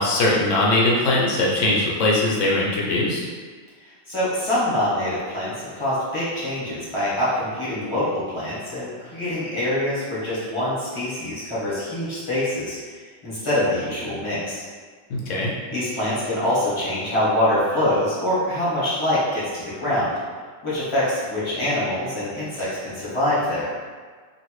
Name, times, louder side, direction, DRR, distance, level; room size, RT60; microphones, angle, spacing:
voice 1, 0.0-3.3 15.1-15.5, left 2 dB, 70° left, -4 dB, 1.0 m, -21 dB
voice 2, 3.8-12.8 13.2-14.6 15.7-20.1 20.6-23.7, left 1 dB, 25° left, -11 dB, 1.2 m, -24 dB
2.9 x 2.6 x 3.0 m, 1.5 s
omnidirectional pair, 1.4 m